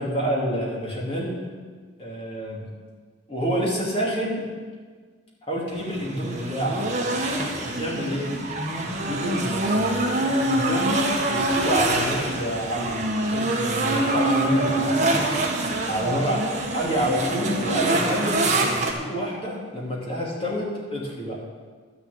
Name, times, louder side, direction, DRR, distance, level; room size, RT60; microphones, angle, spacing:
voice 1, 0.0-1.4 2.0-2.7 3.3-4.4 5.5-7.1 7.6-8.3 8.8-10.0 10.3-11.0 11.3-15.0 15.9-16.4 16.7-18.5 18.9-21.4, equal, 30° left, -4 dB, 2.8 m, -28 dB
sound 1, 5.7-18.9, right 2 dB, 40° right, 1.5 m, -25 dB
12.0 x 7.0 x 8.7 m, 1.5 s
head